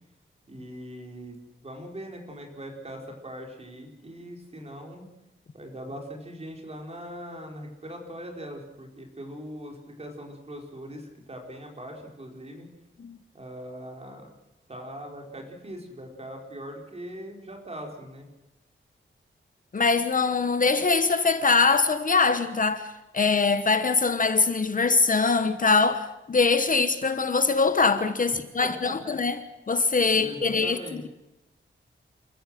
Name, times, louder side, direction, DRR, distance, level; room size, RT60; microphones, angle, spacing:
voice 1, 0.5-5.1 5.5-12.7 13.3-14.3 14.7-18.3 28.3-29.4 30.1-31.0, equal, 30° right, 4.4 m, -41 dB
voice 2, 19.7-29.4 29.7-30.8, left 4 dB, 40° left, 1.1 m, -23 dB
28.0 x 15.0 x 7.7 m
wide cardioid pair, 170°, 21 cm